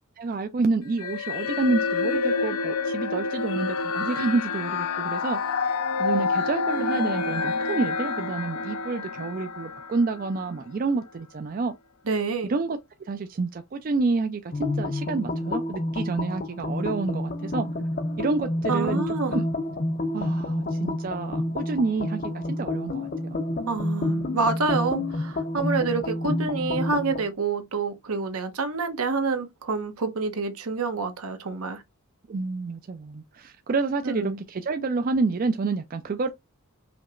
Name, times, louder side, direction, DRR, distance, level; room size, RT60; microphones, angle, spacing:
voice 1, 0.2-5.4 6.0-11.7 12.4-17.7 18.2-19.0 19.3-19.4 20.1-23.4 32.3-36.3, right 3 dB, 40° right, 0.3 m, -28 dB
sound 1, 1.0-10.5, left 4 dB, 85° left, 0.6 m, -28 dB
voice 2, 12.1-12.5 18.7-19.4 23.7-31.8 34.0-34.4, right 4 dB, 80° right, 0.9 m, -27 dB
sound 2, 14.5-27.3, left 1 dB, 40° left, 0.5 m, -29 dB
5.1 x 2.8 x 2.4 m
head